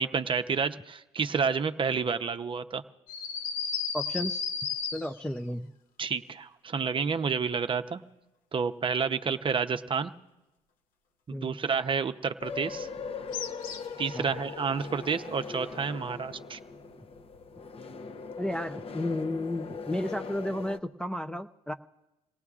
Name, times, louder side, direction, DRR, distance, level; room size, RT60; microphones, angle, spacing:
voice 1, 0.0-2.8 6.0-8.0 8.5-10.1 11.3-12.9 14.0-16.6, right 5 dB, 35° right, 9 dB, 0.7 m, -29 dB
sound 1, 3.1-5.4 13.3-14.0, left 6 dB, 70° left, 1.0 m, -33 dB
voice 2, 3.9-4.4 4.9-5.7 11.3-11.6 14.1-14.3 18.4-21.7, left 1 dB, 5° left, 6 dB, 0.5 m, -33 dB
sound 2, 12.4-20.8, left 5 dB, 40° left, 0.8 m, -40 dB
28.5 x 18.0 x 2.5 m, 1.0 s
supercardioid pair, 75°, 15 cm